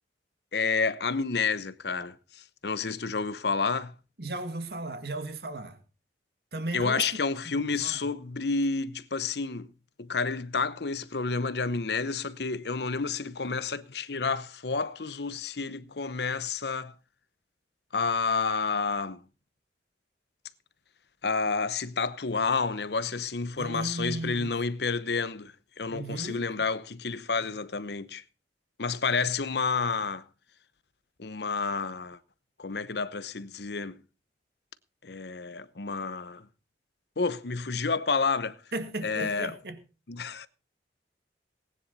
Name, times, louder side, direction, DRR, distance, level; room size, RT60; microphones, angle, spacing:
voice 1, 0.5-3.9 6.7-9.7 10.0-16.9 17.9-19.2 21.2-28.2 28.8-30.2 31.2-32.2 32.6-34.0 35.0-36.5 37.2-38.6 39.0-39.6 40.1-40.5, left 4 dB, 65° left, 0.8 m, -30 dB
voice 2, 4.2-5.8 6.5-8.0 23.6-24.5 25.9-26.5 38.7-39.8, right 2 dB, 60° right, 2.1 m, -36 dB
19.0 x 10.0 x 4.1 m
head